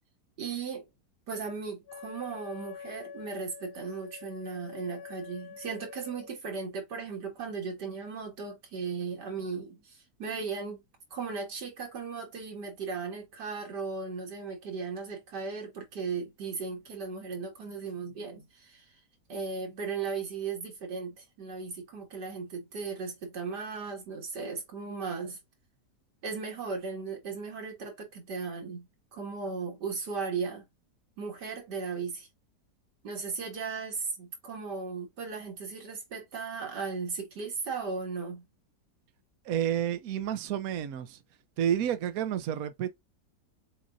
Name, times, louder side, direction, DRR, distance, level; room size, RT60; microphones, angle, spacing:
voice 1, 0.4-0.9 1.3-10.8 11.1-19.0 19.3-25.4 26.2-30.6 31.2-32.3 33.0-38.5, right 5 dB, 85° right, 2.5 m, -36 dB
Wind instrument woodwind instrument, 1.9-6.3, left 7 dB, 70° left, 1.2 m, -46 dB
voice 2, 39.4-41.2 41.6-42.9, right 10 dB, 65° right, 1.1 m, -30 dB
7.3 x 2.6 x 2.4 m
omnidirectional pair, 1.8 m